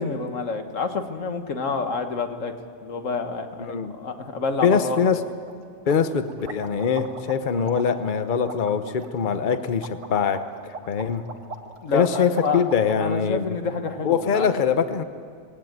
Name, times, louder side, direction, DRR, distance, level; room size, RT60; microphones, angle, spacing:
voice 1, 0.0-2.5 2.8-5.0 11.8-12.6 13.0-14.5, left 4 dB, 60° left, 7 dB, 1.8 m, -28 dB
voice 2, 3.7-4.0 4.6-5.2 5.9-11.2 11.9-13.5 14.0-15.0, left 6 dB, 40° left, 10 dB, 1.0 m, -23 dB
sound 1, 5.1-5.2 5.5-5.6 5.9-13.1, right 4 dB, 60° right, 1.9 m, -40 dB
19.0 x 17.5 x 9.0 m, 2.4 s
omnidirectional pair, 1.5 m